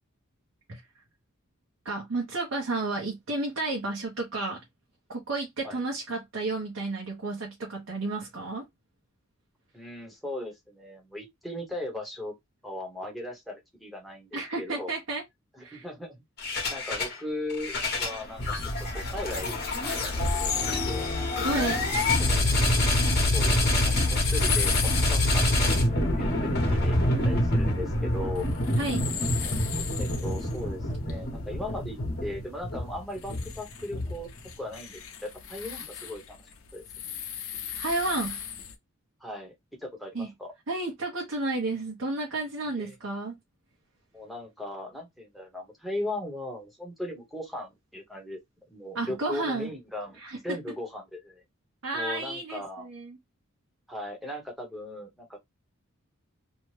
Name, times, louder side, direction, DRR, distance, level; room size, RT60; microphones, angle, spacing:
voice 1, 1.8-4.6 5.1-8.6 14.3-15.2 15.6-15.8 21.4-21.8 28.8-29.1 37.8-38.4 40.1-40.3 40.7-43.3 48.9-49.7 50.2-50.4 51.8-53.2, right 2 dB, 65° right, 0.9 m, -31 dB
voice 2, 9.7-12.3 12.6-14.9 15.6-16.2 16.7-18.5 18.9-19.5 19.8-21.2 22.2-22.6 23.2-23.9 24.2-27.0 27.2-28.5 30.0-34.3 34.6-36.4 36.7-36.9 39.2-39.5 39.8-40.5 42.8-42.9 44.1-48.4 48.7-50.2 50.4-51.4 51.9-52.9 53.9-55.4, left 1 dB, ahead, 0.9 m, -38 dB
sound 1, 16.4-17.2 17.5-34.5, left 1 dB, 50° left, 1.0 m, -26 dB
sound 2, 20.2-38.7, left 8 dB, 75° left, 0.7 m, -38 dB
2.8 x 2.2 x 3.1 m
head